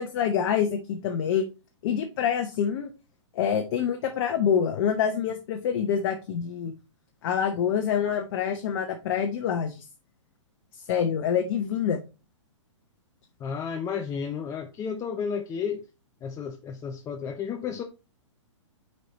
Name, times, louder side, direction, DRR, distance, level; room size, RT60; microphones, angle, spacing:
voice 1, 0.0-1.4 1.8-2.9 3.3-6.7 7.2-9.8 10.9-12.0, left 8 dB, 50° left, 0.9 m, -26 dB
voice 2, 13.4-15.8 16.2-17.8, left 6 dB, 20° left, 0.6 m, -32 dB
6.1 x 4.5 x 4.1 m
hypercardioid pair, 120°, 16 cm